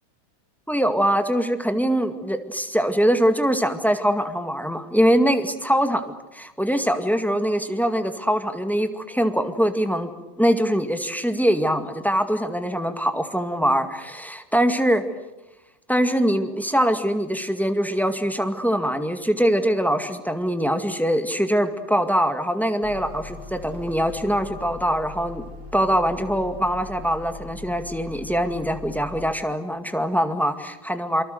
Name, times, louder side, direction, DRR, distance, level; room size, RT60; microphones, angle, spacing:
voice 1, 0.7-10.1 10.4-15.0 15.9-25.4 25.7-31.2, equal, ahead, 7 dB, 2.0 m, -23 dB
sound 1, 22.8-29.3, left 3 dB, 90° right, 3.8 m, -40 dB
27.5 x 25.0 x 8.0 m, 0.99 s
omnidirectional pair, 1.7 m